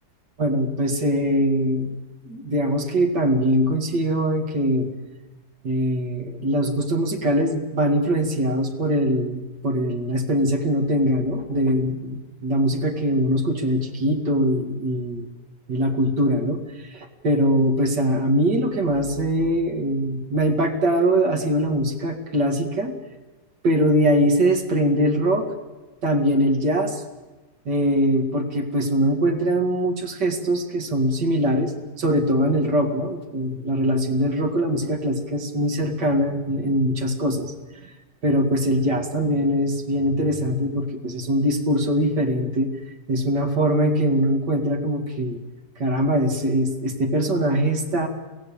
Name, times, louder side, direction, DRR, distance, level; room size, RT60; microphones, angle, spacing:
voice 1, 0.4-2.0 2.3-4.9 5.6-15.3 15.7-23.0 23.6-25.5 26.0-27.0 27.7-37.5 37.8-37.9 38.2-42.7 43.1-45.4 45.8-48.1, equal, 80° right, 4 dB, 2.9 m, -22 dB
23.0 x 16.0 x 8.9 m, 1.2 s
omnidirectional pair, 1.8 m